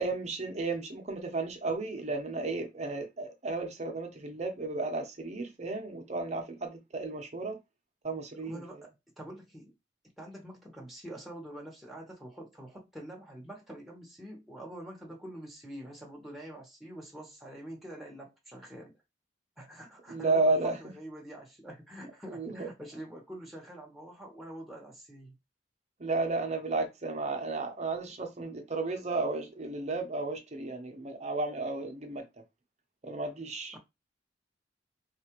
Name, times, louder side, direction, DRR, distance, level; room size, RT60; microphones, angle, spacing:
voice 1, 0.0-7.6 8.0-8.6 20.1-20.9 22.3-22.7 26.0-32.2 33.0-33.8, right 3 dB, 40° right, 0.8 m, -33 dB
voice 2, 8.4-9.7 10.2-18.9 19.6-25.4 33.7-33.8, right 1 dB, ahead, 1.0 m, -46 dB
4.1 x 2.4 x 3.0 m
head